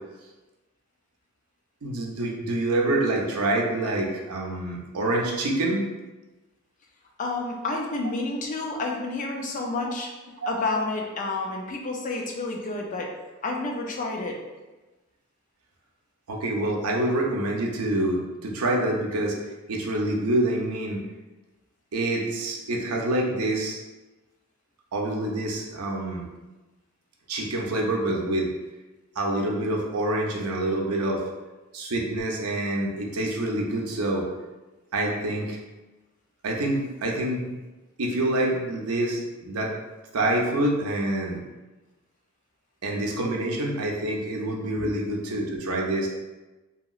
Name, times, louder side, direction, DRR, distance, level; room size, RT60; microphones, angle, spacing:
voice 1, 1.8-5.9 9.7-9.9 10.4-10.5 16.3-19.4 19.7-21.0 21.9-23.8 24.9-26.2 27.3-28.5 29.2-31.2 31.7-34.3 34.9-35.6 36.4-37.5 38.0-39.7 40.1-41.4 42.8-46.1, right 1 dB, 75° right, -1 dB, 0.6 m, -26 dB
voice 2, 7.2-10.1 10.5-13.1 13.4-14.4 44.8-45.0, left 2 dB, 35° left, 1 dB, 0.4 m, -30 dB
2.8 x 2.8 x 2.3 m, 1.1 s
head